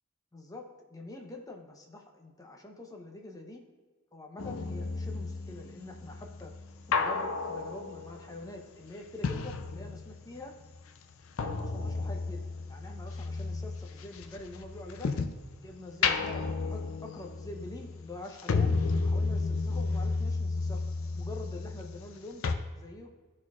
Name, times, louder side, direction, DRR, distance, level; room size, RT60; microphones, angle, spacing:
voice 1, 0.3-3.6 4.1-6.5 6.9-10.6 11.5-12.4 12.7-15.2 15.6-18.7 19.0-20.8 21.1-22.4 22.7-23.1, left 2 dB, 15° left, 2 dB, 0.7 m, -45 dB
sound 1, 4.4-10.4 10.6-15.5 15.9-22.2 22.4-22.5, left 4 dB, 70° left, 0.5 m, -33 dB
13.0 x 4.3 x 2.4 m, 1.3 s
head